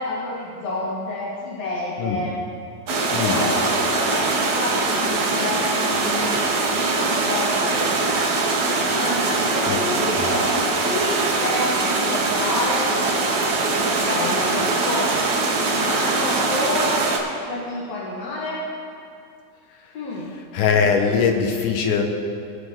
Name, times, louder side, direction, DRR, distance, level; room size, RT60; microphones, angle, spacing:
voice 1, 0.0-2.4 3.2-8.0 9.0-15.2 15.6-16.9 17.4-18.6 19.9-20.4, left 2 dB, 65° left, -5 dB, 2.4 m, -29 dB
sound 1, 2.9-17.2, right 3 dB, 75° right, 0.9 m, -22 dB
voice 2, 20.5-22.0, left 6 dB, 90° left, 4 dB, 2.5 m, -21 dB
19.0 x 6.6 x 3.6 m, 2.6 s
omnidirectional pair, 3.5 m